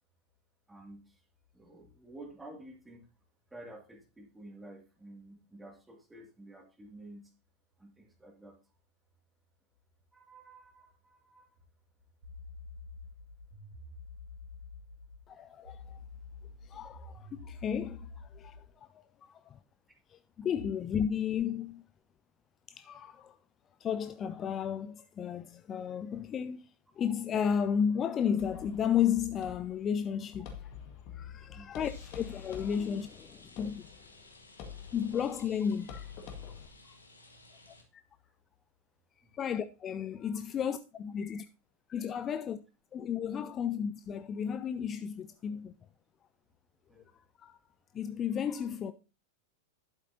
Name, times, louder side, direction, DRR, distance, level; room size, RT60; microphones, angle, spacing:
voice 1, 0.7-1.2 1.5-3.1 3.5-7.3 7.8-8.6 10.1-11.5 31.3-31.7 37.3-37.4 39.2-39.3 46.9-47.1, right 1 dB, 10° right, 2.3 m, -51 dB
sound 1, 12.2-15.2 15.6-18.7, left 3 dB, 70° right, 1.9 m, -48 dB
voice 2, 15.3-16.0 16.6-18.9 19.2-19.6 20.1-21.8 22.7-23.4 23.8-26.7 27.0-30.6 31.1-33.9 34.9-36.1 37.7-38.0 39.3-41.5 41.9-42.6 42.9-45.8 47.0-47.1 47.4-47.6 47.9-48.9, left 8 dB, 25° left, 0.4 m, -33 dB
sound 2, 28.4-36.7, left 7 dB, 40° left, 1.9 m, -47 dB
Rain, 31.8-37.8, left 2 dB, 80° left, 1.7 m, -56 dB
11.5 x 8.1 x 2.8 m
figure-of-eight pair, 90°, 0 cm